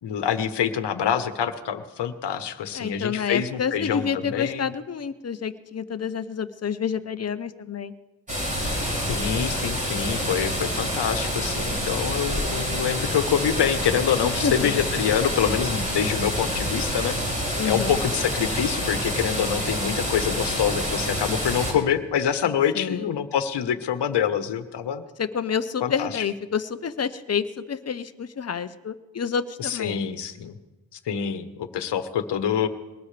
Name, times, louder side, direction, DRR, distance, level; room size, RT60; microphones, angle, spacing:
voice 1, 0.0-4.7 9.1-17.2 17.6-25.0 25.8-26.2 29.6-30.6 30.9-32.7, left 8 dB, 65° left, 9 dB, 1.3 m, -26 dB
voice 2, 2.7-7.9 14.2-14.8 17.6-18.0 22.7-23.2 25.2-30.1, left 7 dB, 35° left, 11 dB, 0.9 m, -29 dB
sound 1, 8.3-21.7, equal, 15° right, 6.6 m, -27 dB
22.0 x 18.5 x 3.4 m, 1.2 s
cardioid pair, 100°, 44 cm